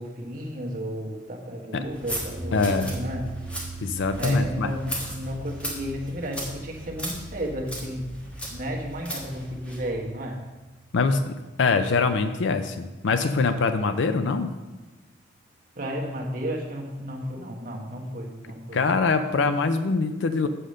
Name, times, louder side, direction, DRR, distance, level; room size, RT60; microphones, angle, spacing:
voice 1, 0.0-3.2 4.2-8.2 8.5-10.4 15.8-18.8, equal, 45° right, -1 dB, 1.3 m, -33 dB
sound 1, 1.8-9.9, equal, 5° left, 1.3 m, -37 dB
sound 2, 2.3-12.6, right 3 dB, 15° right, 0.7 m, -42 dB
voice 2, 2.5-2.9 3.8-4.7 10.9-14.5 18.7-20.5, left 4 dB, 70° left, 9 dB, 0.4 m, -24 dB
7.8 x 5.1 x 6.4 m, 1.2 s
head